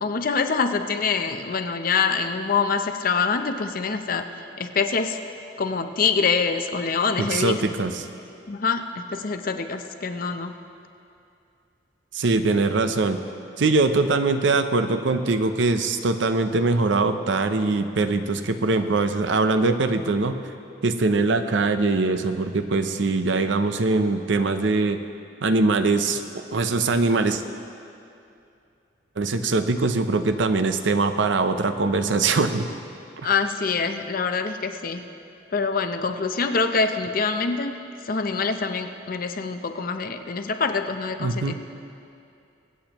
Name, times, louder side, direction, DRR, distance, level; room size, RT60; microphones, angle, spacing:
voice 1, 0.0-5.2 5.6-7.6 8.5-10.5 33.2-35.0 35.5-37.8 38.0-41.5, left 5 dB, 50° left, 7 dB, 0.6 m, -25 dB
voice 2, 7.2-8.1 12.1-13.2 13.6-20.4 20.8-25.0 25.4-27.4 29.2-32.7 33.2-33.3 41.2-41.5, right 3 dB, 75° right, 9 dB, 0.6 m, -22 dB
24.0 x 8.7 x 3.0 m, 2.6 s
head